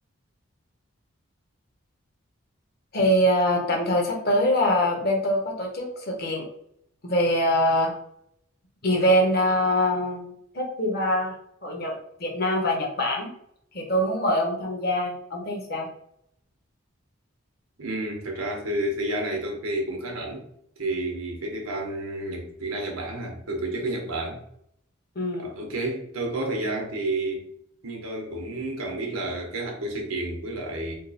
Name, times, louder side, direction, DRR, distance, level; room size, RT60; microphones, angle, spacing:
voice 1, 2.9-6.4 7.0-7.9 8.8-10.3 10.5-11.3 11.6-11.9 12.2-13.3 13.7-15.9 25.1-25.5, equal, 45° left, 1 dB, 0.9 m, -23 dB
voice 2, 17.8-20.4 20.8-24.4 25.4-27.5 27.8-30.9, right 1 dB, 90° right, 1 dB, 1.1 m, -30 dB
3.7 x 2.3 x 4.1 m, 0.73 s
head